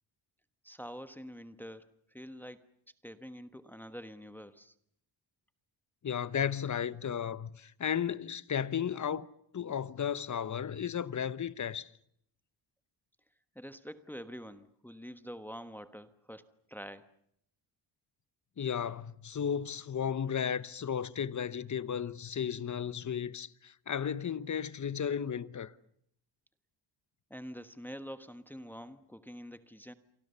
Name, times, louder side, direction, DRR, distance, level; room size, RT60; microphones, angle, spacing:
voice 1, 0.6-2.6 3.0-4.7 13.5-17.1 27.3-29.9, equal, 5° left, 1.3 m, -46 dB
voice 2, 6.0-9.3 9.5-11.9 18.6-25.7, left 8 dB, 40° left, 1.1 m, -34 dB
29.0 x 24.0 x 6.9 m
wide cardioid pair, 130°, 45 cm